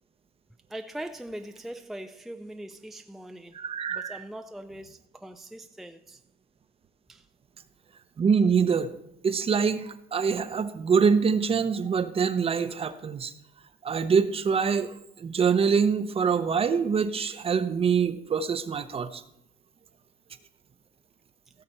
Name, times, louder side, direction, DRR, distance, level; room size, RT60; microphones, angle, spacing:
voice 1, 0.7-3.6 3.9-6.2 7.1-7.3, right 1 dB, ahead, 0.4 m, -41 dB
voice 2, 3.5-4.2 8.2-8.9 9.2-13.3 13.8-19.2, right 6 dB, 35° right, 0.8 m, -25 dB
16.5 x 6.7 x 4.4 m
cardioid pair, 110°, 17 cm